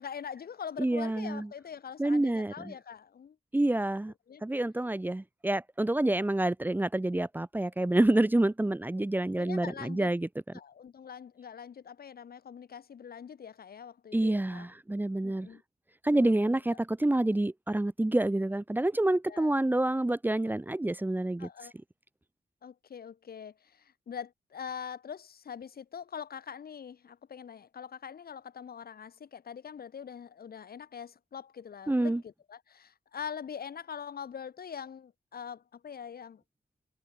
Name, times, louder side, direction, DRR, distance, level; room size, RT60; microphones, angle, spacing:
voice 1, 0.0-3.4 4.3-4.5 9.4-10.1 10.5-14.7 15.2-15.6 16.1-16.8 19.3-19.6 21.4-21.7 22.6-36.4, left 7 dB, 70° left, 7.6 m, -43 dB
voice 2, 0.8-1.5 2.0-2.7 3.5-4.1 4.4-10.3 14.1-15.5 16.0-21.5 31.9-32.2, right 1 dB, 10° right, 1.4 m, -28 dB
wide cardioid pair, 135°, 16 cm